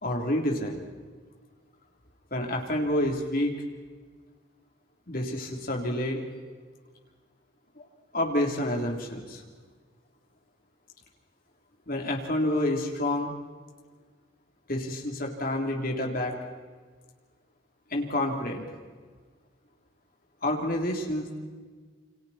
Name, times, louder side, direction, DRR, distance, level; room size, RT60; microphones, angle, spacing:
voice 1, 0.0-0.8 2.3-3.5 5.1-6.2 7.8-7.9 8.1-9.4 11.9-13.3 14.7-16.3 17.9-18.7 20.4-21.4, left 1 dB, 45° left, 1 dB, 3.5 m, -28 dB
29.0 x 26.0 x 4.4 m, 1.5 s
head